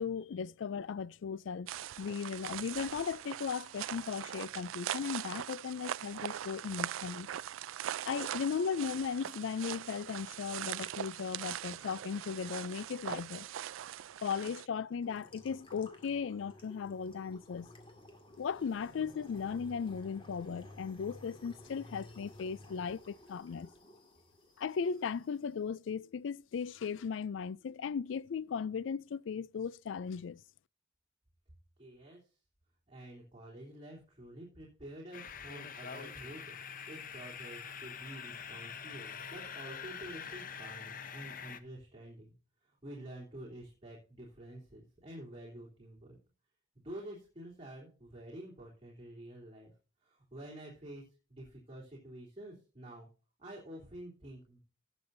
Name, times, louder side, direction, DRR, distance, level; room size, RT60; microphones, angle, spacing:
voice 1, 0.0-1.7 2.0-7.3 8.1-13.5 14.2-17.7 18.4-23.7 24.6-30.4, left 6 dB, 70° left, 0.4 m, -37 dB
sound 1, 1.7-14.7, right 11 dB, 90° right, 0.4 m, -41 dB
sound 2, 15.0-25.4, left 1 dB, 25° left, 2.1 m, -54 dB
voice 2, 31.8-32.4 32.9-36.6 36.9-42.3 42.6-46.2 46.7-49.7 50.0-51.0 51.3-53.1 53.4-54.6, right 1 dB, 25° right, 3.2 m, -49 dB
sound 3, 35.1-41.6, left 7 dB, 45° left, 0.8 m, -45 dB
18.5 x 6.9 x 2.6 m
head